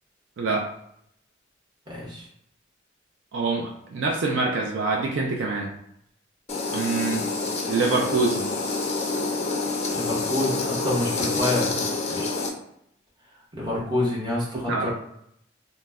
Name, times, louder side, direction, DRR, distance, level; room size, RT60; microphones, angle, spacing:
voice 1, 0.4-0.7 3.3-5.7 6.7-7.2 7.7-8.5 14.5-14.9, right 3 dB, 65° right, 0 dB, 0.4 m, -25 dB
voice 2, 1.9-2.2 9.9-11.8 12.1-12.3 13.5-14.9, left 1 dB, 20° right, -6 dB, 0.9 m, -27 dB
sound 1, 6.5-12.5, left 3 dB, 30° left, 0.4 m, -27 dB
2.2 x 2.0 x 3.4 m, 0.73 s
head